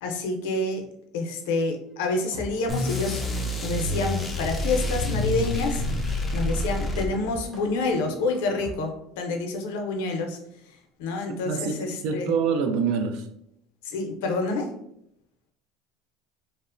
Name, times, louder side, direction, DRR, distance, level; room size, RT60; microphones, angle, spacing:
voice 1, 0.0-0.8 1.1-5.8 6.3-10.4 10.7-12.3 13.8-14.7, left 3 dB, 85° left, 0.5 m, -28 dB
sound 1, 1.8-8.7, equal, 15° right, 0.7 m, -43 dB
sound 2, 2.7-7.5, left 1 dB, 15° left, 0.4 m, -28 dB
voice 2, 11.4-13.3, right 5 dB, 65° right, 0.3 m, -26 dB
2.8 x 2.0 x 2.5 m
supercardioid pair, 135°, 0 cm